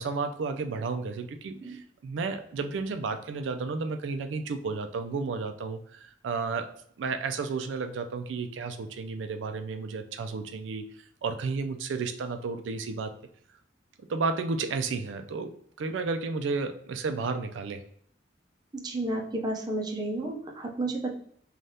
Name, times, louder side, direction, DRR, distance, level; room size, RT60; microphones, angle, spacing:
voice 1, 0.0-10.8 11.2-13.1 14.0-17.8, right 4 dB, 90° right, 8 dB, 0.4 m, -32 dB
voice 2, 18.7-21.1, right 2 dB, 20° right, 1 dB, 0.5 m, -31 dB
3.3 x 2.3 x 2.6 m, 0.63 s
head